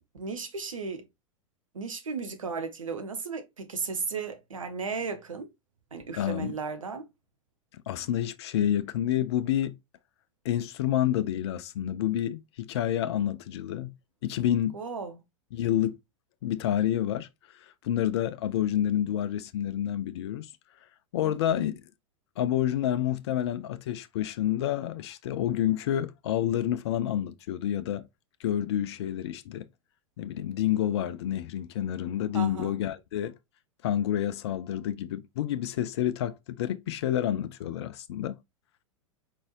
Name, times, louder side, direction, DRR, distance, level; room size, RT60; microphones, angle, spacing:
voice 1, 0.1-1.0 1.7-5.5 5.9-7.1 14.7-15.2 21.2-21.7 32.3-32.7, right 5 dB, 75° right, 1.1 m, -35 dB
voice 2, 6.2-6.5 7.9-9.8 10.4-13.9 14.2-14.8 15.5-16.0 16.4-17.3 17.8-20.5 21.1-21.8 22.4-28.0 28.4-29.7 30.2-33.3 33.8-38.4, left 11 dB, 55° left, 0.5 m, -28 dB
4.6 x 4.1 x 2.4 m
figure-of-eight pair, 95°, 17 cm